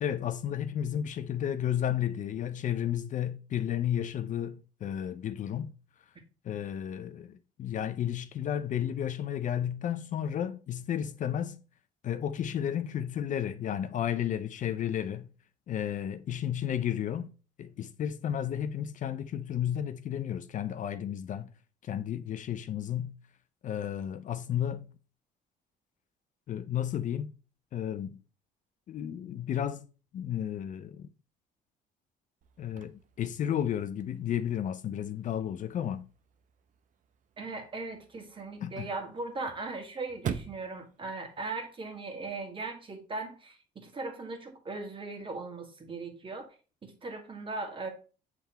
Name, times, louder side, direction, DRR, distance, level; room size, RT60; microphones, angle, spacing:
voice 1, 0.0-5.7 6.4-11.6 12.0-15.3 15.7-17.3 17.6-21.5 21.8-23.1 23.6-24.9 26.5-27.3 27.7-28.2 28.9-29.9 30.1-31.1 32.6-36.1 38.6-38.9, left 10 dB, 50° left, 0.5 m, -32 dB
Chirp tweet / Car / Slam, 32.4-42.4, right 8 dB, 50° right, 0.7 m, -46 dB
voice 2, 37.4-46.5 46.8-47.9, right 3 dB, 30° right, 1.7 m, -38 dB
7.6 x 3.5 x 4.3 m
cardioid pair, 110°, 17 cm